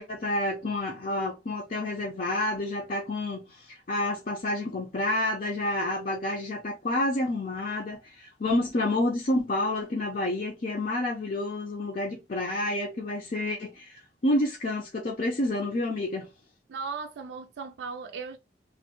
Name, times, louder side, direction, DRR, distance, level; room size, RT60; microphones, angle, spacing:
voice 1, 0.0-16.3, left 1 dB, 50° left, 0.6 m, -29 dB
voice 2, 16.7-18.4, right 5 dB, 75° right, 0.4 m, -37 dB
3.1 x 2.1 x 2.8 m
head